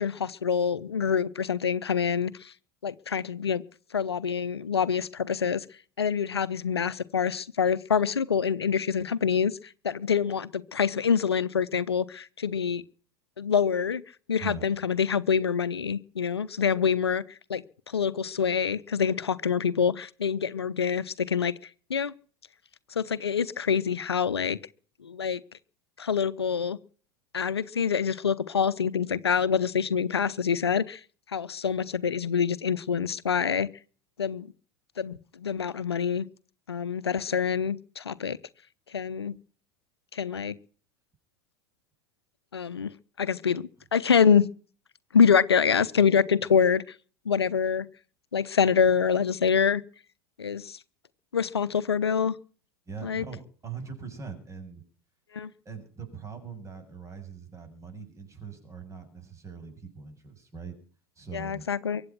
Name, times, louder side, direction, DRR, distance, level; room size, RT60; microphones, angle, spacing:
voice 1, 0.0-2.5 2.8-3.6 3.9-5.6 6.0-9.5 9.8-12.8 13.4-14.0 14.3-17.2 17.5-21.5 21.9-22.1 23.0-24.6 25.0-25.4 26.0-26.8 27.3-31.0 31.3-33.7 34.2-34.5 35.0-36.3 36.7-38.4 38.9-39.4 40.1-40.5 42.5-42.9 43.2-44.5 45.1-46.9 47.3-47.9 48.3-49.8 50.4-50.8 51.3-52.3 53.0-53.2 55.3-55.5 61.3-62.0, left 6 dB, 90° left, 17 dB, 0.8 m, -26 dB
voice 2, 52.9-54.8 55.6-60.7 61.2-61.7, right 6 dB, 25° right, 7 dB, 7.7 m, -41 dB
23.5 x 8.8 x 6.0 m, 0.42 s
hypercardioid pair, 80°, 13 cm